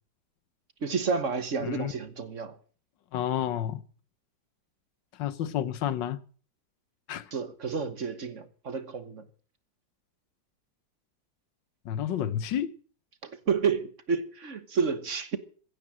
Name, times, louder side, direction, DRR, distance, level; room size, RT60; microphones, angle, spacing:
voice 1, 0.8-2.6 7.3-9.2 13.2-15.4, right 5 dB, 45° right, 1.5 m, -30 dB
voice 2, 1.6-1.9 3.1-3.8 5.2-6.2 7.1-7.3 11.9-12.7, left 10 dB, 90° left, 1.6 m, -30 dB
16.0 x 9.8 x 7.6 m
omnidirectional pair, 1.9 m